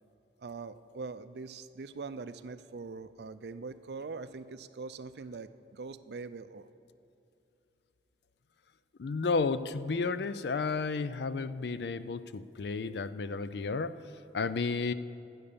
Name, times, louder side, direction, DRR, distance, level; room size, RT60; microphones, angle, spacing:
voice 1, 0.4-6.7, right 4 dB, 70° right, 13 dB, 0.5 m, -42 dB
voice 2, 9.0-14.0 14.3-14.9, left 4 dB, 75° left, 14 dB, 0.4 m, -32 dB
14.0 x 8.1 x 6.9 m, 2.7 s
head